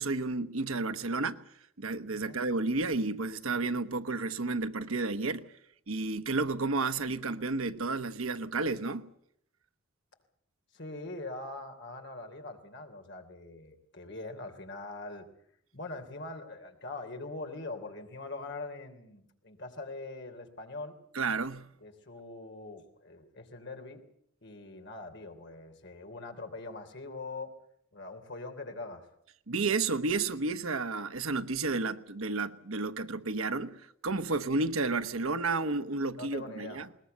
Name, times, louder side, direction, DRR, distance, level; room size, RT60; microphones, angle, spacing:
voice 1, 0.0-1.4 1.8-5.5 5.9-9.1 21.1-21.7 29.5-36.9, right 3 dB, 80° right, 1.1 m, -31 dB
voice 2, 10.7-15.3 15.7-21.0 21.8-24.0 24.4-27.5 27.9-29.1 36.1-36.8, left 2 dB, 55° left, 3.3 m, -42 dB
21.0 x 20.0 x 7.9 m
head